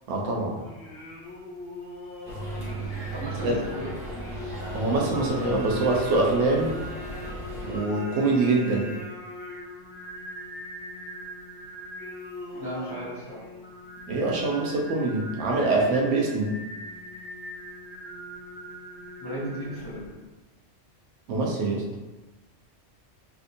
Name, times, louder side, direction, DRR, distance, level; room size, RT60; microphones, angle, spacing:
voice 1, 0.1-0.6 3.4-3.6 4.7-6.7 7.6-9.0 14.1-16.6 21.3-21.9, right 2 dB, 80° right, -1 dB, 1.0 m, -24 dB
Singing, 0.5-20.1, left 1 dB, 85° left, 1.2 m, -41 dB
sound 1, 2.2-7.8, right 2 dB, 50° right, 1.2 m, -36 dB
voice 2, 2.6-4.0 12.5-13.5 19.2-20.2, right 1 dB, 30° left, -8 dB, 0.4 m, -36 dB
3.4 x 2.7 x 2.6 m, 1.2 s
omnidirectional pair, 1.3 m